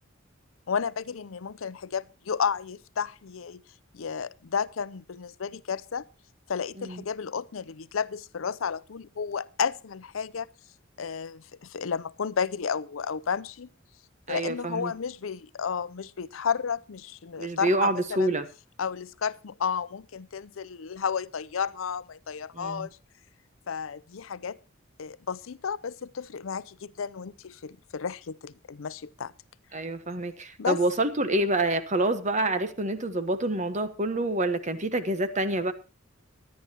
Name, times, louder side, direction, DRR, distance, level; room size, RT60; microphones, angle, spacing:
voice 1, 0.7-3.6 3.9-6.1 6.5-10.5 11.0-13.7 14.3-18.3 18.8-23.0 23.7-24.6 25.0-29.3 30.6-30.8, left 6 dB, 85° left, 0.6 m, -32 dB
voice 2, 14.3-14.9 17.4-18.5 22.5-22.9 29.7-35.7, right 2 dB, 35° right, 1.2 m, -27 dB
23.5 x 10.5 x 2.9 m
head